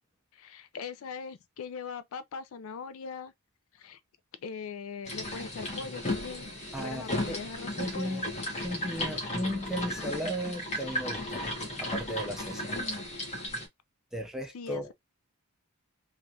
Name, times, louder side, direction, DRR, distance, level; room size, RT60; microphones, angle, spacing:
voice 1, 0.3-3.3 3.7-4.0 4.4-6.5 6.8-8.2 14.5-14.9, left 5 dB, 65° left, 0.4 m, -40 dB
sound 1, 5.1-13.7, left 1 dB, 30° left, 1.0 m, -35 dB
voice 2, 6.7-7.4 7.8-8.3 8.6-11.4 11.8-12.8 14.1-14.9, equal, ahead, 0.5 m, -35 dB
3.2 x 2.4 x 2.6 m
head